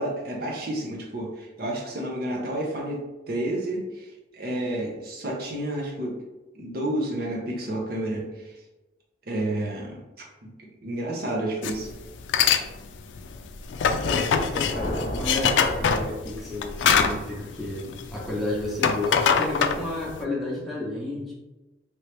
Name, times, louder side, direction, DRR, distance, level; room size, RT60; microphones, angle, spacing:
voice 1, 0.0-6.1 6.5-8.5 9.3-10.3 10.6-11.9, right 1 dB, 55° right, -1 dB, 0.7 m, -30 dB
sound 1, 11.6-11.8 12.2-12.6 13.0-18.3 18.6-20.2, left 7 dB, 90° left, 0.3 m, -23 dB
voice 2, 13.9-21.3, left 1 dB, ahead, -6 dB, 0.9 m, -31 dB
sound 2, 14.7-16.9, equal, 40° left, 0.6 m, -34 dB
3.0 x 2.9 x 3.2 m, 1.1 s
head